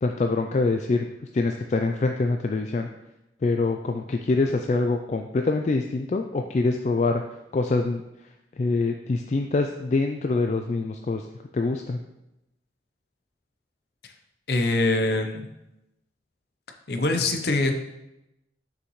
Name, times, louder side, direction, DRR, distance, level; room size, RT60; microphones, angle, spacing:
voice 1, 0.0-1.1 1.3-2.9 3.4-7.2 7.5-8.0 8.6-11.3 11.5-12.0, left 3 dB, 40° left, 4 dB, 0.3 m, -25 dB
voice 2, 14.5-15.5 16.9-17.8, left 2 dB, 60° left, 5 dB, 0.7 m, -23 dB
6.3 x 5.8 x 3.1 m, 0.90 s
head